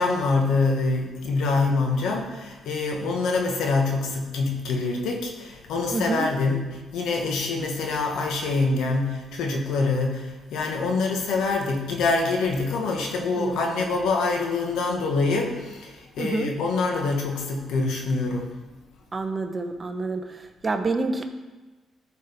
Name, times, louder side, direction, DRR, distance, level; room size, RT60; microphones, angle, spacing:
voice 1, 0.0-18.5, left 3 dB, 80° left, 2 dB, 1.4 m, -25 dB
voice 2, 5.9-6.3 13.4-13.9 16.2-16.5 19.1-21.2, right 3 dB, 30° right, 6 dB, 0.9 m, -28 dB
14.0 x 5.1 x 3.6 m, 1.2 s
cardioid pair, 90°, 0 cm